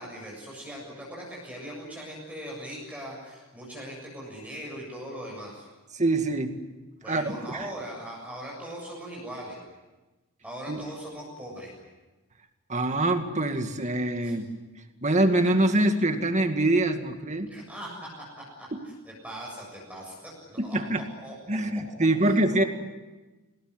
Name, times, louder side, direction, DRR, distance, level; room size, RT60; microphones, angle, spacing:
voice 1, 0.0-5.7 7.0-9.6 10.4-11.8 14.2-14.3 17.5-18.1 18.6-18.7 19.1-21.3 22.2-22.7, equal, 5° right, -3 dB, 7.3 m, -40 dB
voice 2, 6.0-6.6 7.1-7.7 10.7-10.8 12.7-14.5 15.0-17.5 18.7-18.8 20.6-21.1 21.5-22.6, right 1 dB, 30° right, 6 dB, 2.2 m, -24 dB
27.5 x 20.0 x 9.7 m, 1.2 s
head